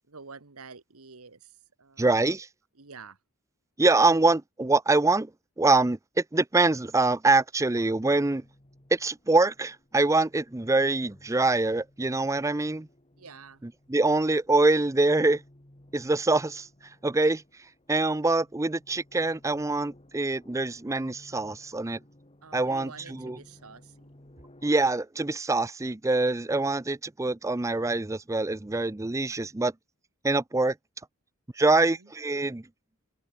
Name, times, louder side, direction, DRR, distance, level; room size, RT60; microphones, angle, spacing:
voice 1, 0.1-1.5 1.8-2.3 2.8-3.2 13.2-13.6 22.4-23.9 31.7-32.1, right 4 dB, 80° right, 1.7 m, -48 dB
voice 2, 2.0-2.5 3.8-5.3 5.6-8.4 8.9-12.9 13.6-15.4 15.9-16.7 17.0-17.4 17.9-22.0 22.5-23.4 24.6-29.7 30.2-30.7 31.6-32.6, right 2 dB, 15° right, 0.5 m, -24 dB
sound 1, 7.8-24.8, left 1 dB, 25° left, 2.2 m, -57 dB
head